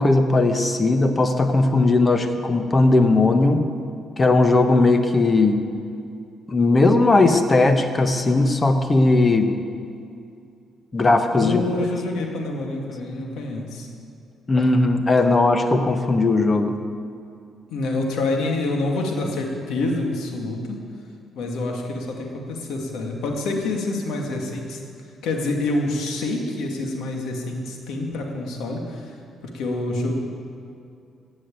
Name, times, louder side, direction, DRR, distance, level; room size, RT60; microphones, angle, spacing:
voice 1, 0.0-3.7 4.2-5.6 6.5-9.5 10.9-11.6 14.5-16.7, left 2 dB, 30° left, 7 dB, 1.2 m, -18 dB
voice 2, 11.3-13.9 17.7-20.8 21.4-24.8 25.2-29.2 29.4-30.2, left 2 dB, 85° left, 1 dB, 2.2 m, -27 dB
16.0 x 6.4 x 9.1 m, 2.4 s
cardioid pair, 90°, 0 cm